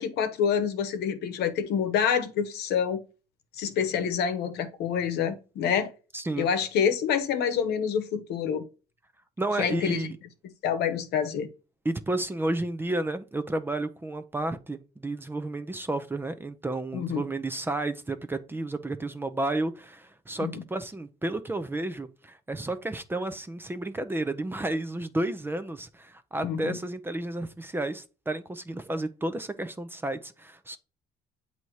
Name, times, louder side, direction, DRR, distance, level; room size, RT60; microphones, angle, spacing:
voice 1, 0.0-3.0 3.6-5.9 6.4-8.6 9.6-10.1 10.6-11.5 16.9-17.2 20.4-20.6 26.4-26.8, left 7 dB, 75° left, 0.9 m, -27 dB
voice 2, 6.1-6.5 9.4-10.2 11.8-30.8, right 2 dB, 15° right, 0.5 m, -32 dB
7.8 x 2.8 x 4.6 m
cardioid pair, 110°, 17 cm